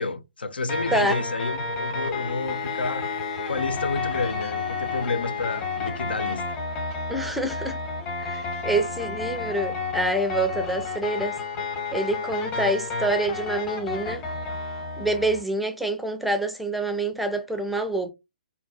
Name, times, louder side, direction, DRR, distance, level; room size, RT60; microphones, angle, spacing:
voice 1, 0.0-3.1 3.5-6.4, left 3 dB, 85° left, 0.5 m, -29 dB
sound 1, 0.7-15.4, left 4 dB, 30° left, 0.9 m, -31 dB
Bowed string instrument, 2.0-7.0, left 5 dB, 55° left, 1.3 m, -40 dB
voice 2, 7.1-7.8 8.2-11.4 11.9-14.2 15.0-18.1, right 2 dB, ahead, 0.4 m, -26 dB
3.9 x 2.2 x 2.3 m
hypercardioid pair, 135°, 5 cm